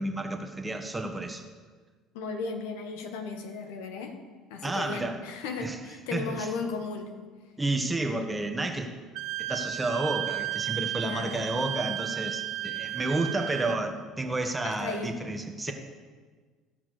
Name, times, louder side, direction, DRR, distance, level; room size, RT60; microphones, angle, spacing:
voice 1, 0.0-1.4 4.6-5.2 5.6-5.8 6.1-6.5 7.6-9.0 9.4-15.7, right 2 dB, 15° right, 5 dB, 1.5 m, -31 dB
voice 2, 2.1-4.1 4.5-7.1 11.0-11.5 14.6-15.2, left 4 dB, 85° left, 6 dB, 1.5 m, -35 dB
Wind instrument woodwind instrument, 9.2-13.8, right 13 dB, 75° right, 0.6 m, -33 dB
15.0 x 5.9 x 6.6 m, 1.5 s
supercardioid pair, 80°, 0 cm